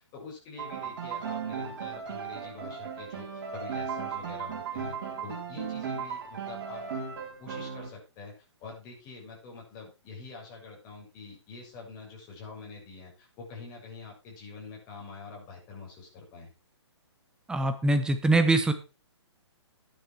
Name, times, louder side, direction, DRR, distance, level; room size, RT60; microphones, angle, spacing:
voice 1, 0.0-5.0 5.2-6.8 7.4-16.5, left 4 dB, 25° left, -2 dB, 7.1 m, -45 dB
Piano, 0.6-7.9, right 7 dB, 45° right, 4.2 m, -36 dB
voice 2, 17.5-18.7, right 2 dB, 5° right, 8 dB, 1.3 m, -23 dB
11.5 x 10.0 x 4.7 m, 0.30 s
hypercardioid pair, 135°, 15 cm